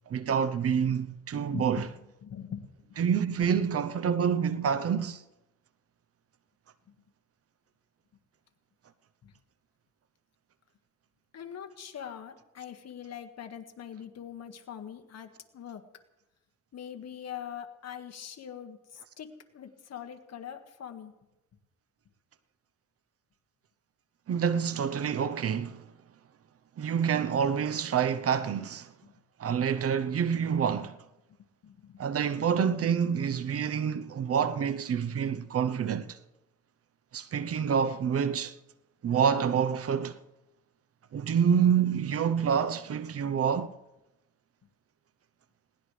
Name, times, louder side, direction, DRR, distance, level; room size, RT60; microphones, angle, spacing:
voice 1, 0.1-1.9 3.0-5.2 24.3-25.8 26.8-28.9 29.4-31.0 32.0-36.2 37.1-38.5 39.0-40.2 41.1-43.7, right 7 dB, 50° right, 0.8 m, -27 dB
voice 2, 1.5-3.0 3.3-3.5 6.9-7.0 9.2-9.3 11.3-15.8 16.7-19.3 19.5-21.1 29.0-29.1 31.6-32.3, left 9 dB, 60° left, 1.8 m, -43 dB
21.0 x 18.5 x 3.3 m
cardioid pair, 90°, 30 cm